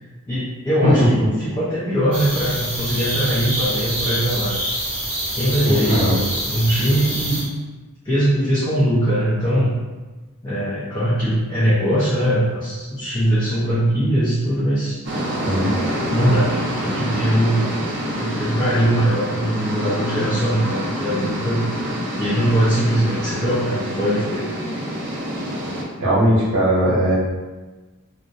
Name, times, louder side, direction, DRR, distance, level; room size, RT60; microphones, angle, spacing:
voice 1, 0.3-4.6 5.3-7.4 8.0-9.7 10.4-15.0 16.1-17.8 18.2-21.9 22.2-24.4, equal, 20° left, -10 dB, 0.4 m, -21 dB
sound 1, 2.1-7.4, right 1 dB, 25° right, 0.7 m, -26 dB
voice 2, 5.6-6.1 15.4-15.7 26.0-27.1, equal, 80° right, -8 dB, 0.8 m, -18 dB
sound 2, 15.1-25.8, equal, 55° right, 0.4 m, -26 dB
2.4 x 2.0 x 2.6 m, 1.2 s
head